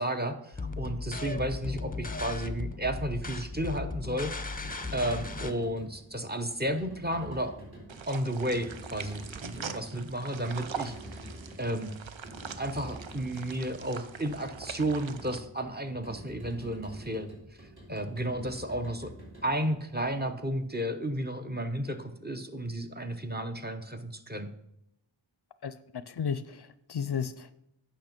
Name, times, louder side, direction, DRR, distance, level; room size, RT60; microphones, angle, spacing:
voice 1, 0.0-4.3 4.9-7.5 8.1-11.1 11.6-11.9 12.6-17.3 17.6-19.1 19.4-24.5, right 1 dB, 20° right, 6 dB, 0.8 m, -32 dB
sound 1, 0.5-5.5, left 3 dB, 20° left, 0.7 m, -36 dB
sound 2, 4.4-20.6, right 1 dB, 55° right, 3.3 m, -48 dB
sound 3, 7.9-15.4, right 7 dB, 75° right, 0.6 m, -43 dB
voice 2, 25.6-27.5, left 7 dB, 60° left, 14 dB, 0.5 m, -34 dB
8.7 x 5.6 x 5.2 m, 0.81 s
wide cardioid pair, 45°, 46 cm